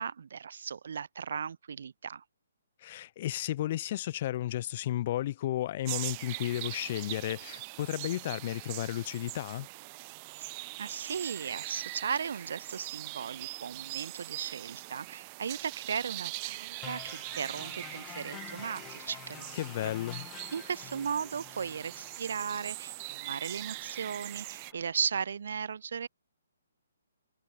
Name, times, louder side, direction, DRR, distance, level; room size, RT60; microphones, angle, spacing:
voice 1, 0.0-2.2 10.4-19.6 20.5-26.1, right 6 dB, 60° right, 1.6 m, -36 dB
voice 2, 2.8-9.7 19.5-20.3, left 13 dB, 40° left, 2.1 m, -33 dB
sound 1, 5.9-24.7, right 27 dB, 30° right, 0.7 m, -42 dB
sound 2, 16.8-24.8, left 17 dB, 20° left, 2.7 m, -50 dB
figure-of-eight pair, 135°, 0 cm